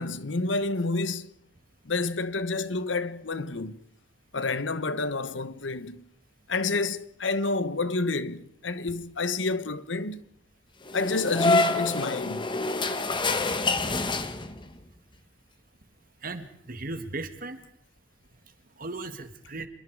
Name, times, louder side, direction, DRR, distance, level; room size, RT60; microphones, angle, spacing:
voice 1, 0.0-1.4 1.8-3.8 4.3-6.1 6.5-10.2 10.9-12.5, left 3 dB, 90° left, 1.2 m, -29 dB
sound 1, 10.9-14.8, left 3 dB, 25° left, 1.5 m, -27 dB
voice 2, 16.2-17.6 18.8-19.7, right 2 dB, 50° right, 2.1 m, -36 dB
27.5 x 22.5 x 4.9 m
head